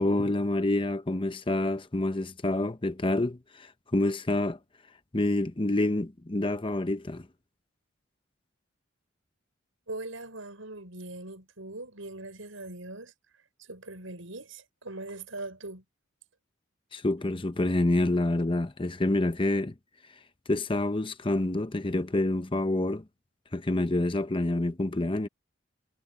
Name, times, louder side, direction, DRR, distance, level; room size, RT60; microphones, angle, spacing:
voice 1, 0.0-4.6 5.1-7.3 16.9-19.7 20.5-23.0 23.5-25.3, left 2 dB, 25° left, 0.8 m, -27 dB
voice 2, 9.9-13.1 13.6-15.8, right 2 dB, 85° right, 6.1 m, -41 dB
head